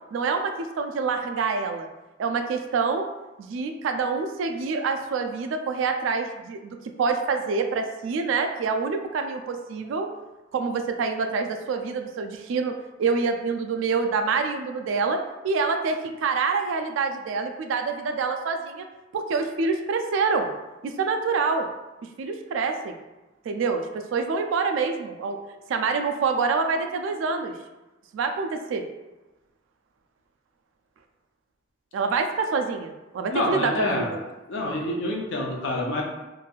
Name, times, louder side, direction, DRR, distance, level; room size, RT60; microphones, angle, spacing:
voice 1, 0.1-1.9 2.2-3.0 3.4-10.1 10.5-12.7 13.0-15.2 15.4-18.9 19.1-20.5 20.8-21.7 22.2-23.0 23.5-23.9 24.1-25.4 25.7-27.5 28.1-28.8 31.9-34.2, right 4 dB, 75° right, 6 dB, 0.3 m, -26 dB
voice 2, 33.3-34.1 34.5-36.0, left 1 dB, 65° left, -1 dB, 0.6 m, -27 dB
3.0 x 2.5 x 2.3 m, 1.1 s
head